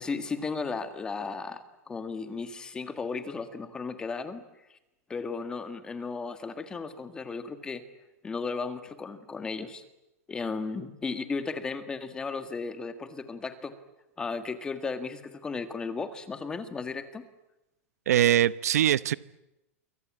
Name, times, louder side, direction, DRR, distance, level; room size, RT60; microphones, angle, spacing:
voice 1, 0.0-4.4 5.1-7.8 8.2-9.8 10.3-13.7 14.2-17.2, left 4 dB, 10° left, 1.7 m, -35 dB
voice 2, 18.1-19.1, right 11 dB, 90° right, 1.0 m, -22 dB
28.0 x 24.0 x 8.7 m
supercardioid pair, 170°, 8 cm